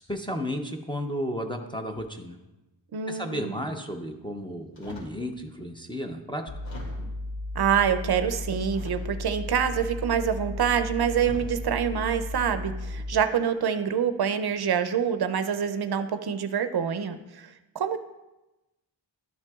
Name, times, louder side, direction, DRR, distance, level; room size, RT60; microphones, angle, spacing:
voice 1, 0.1-2.4 3.1-6.4, equal, 10° left, 1 dB, 0.4 m, -33 dB
voice 2, 2.9-3.5 7.6-18.0, right 8 dB, 60° right, 9 dB, 0.5 m, -26 dB
sound 1, 4.7-5.2 5.9-6.0 6.6-7.3 8.7-9.4 10.5-10.7 11.1-11.6 12.3-12.5, equal, 75° left, 2.4 m, -44 dB
sound 2, 6.5-13.3, left 2 dB, 55° left, 1.0 m, -35 dB
12.0 x 5.8 x 2.3 m, 1.0 s
wide cardioid pair, 160°, 45 cm